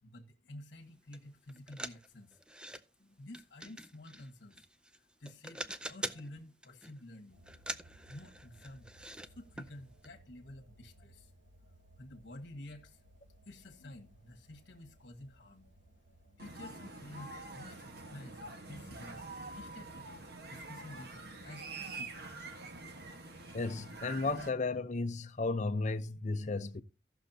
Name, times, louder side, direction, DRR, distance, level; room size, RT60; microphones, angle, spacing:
voice 1, 0.0-2.4 3.2-7.5 8.1-11.3 12.0-13.0 13.4-15.7 16.4-20.1 20.5-22.3, left 1 dB, 65° left, 1.4 m, -51 dB
sound 1, 1.1-1.2 1.5-2.8 3.3-5.0 5.3-6.3 6.6-7.0 7.4-9.3 9.6-9.7 10.0-10.1, right 1 dB, 5° right, 0.5 m, -44 dB
sound 2, 7.3-23.1, right 1 dB, 80° right, 1.3 m, -62 dB
sound 3, 16.4-24.5, right 3 dB, 60° right, 1.3 m, -46 dB
voice 2, 23.5-26.8, left 3 dB, 40° left, 0.7 m, -34 dB
16.5 x 6.3 x 2.8 m
head